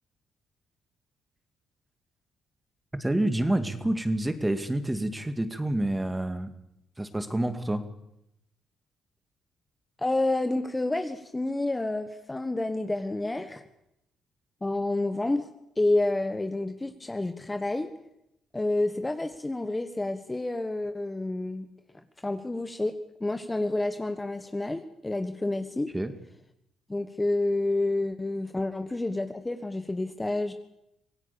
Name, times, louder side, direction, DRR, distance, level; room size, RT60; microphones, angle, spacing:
voice 1, 3.0-6.5 7.0-7.8 25.9-26.1, right 1 dB, 10° right, 9 dB, 2.3 m, -28 dB
voice 2, 10.0-13.6 14.6-15.5 15.8-17.9 18.5-21.7 22.2-22.9 23.2-25.9 26.9-30.5, left 2 dB, 15° left, 8 dB, 1.4 m, -29 dB
25.5 x 17.5 x 7.1 m, 0.83 s
cardioid pair, 90°, 0 cm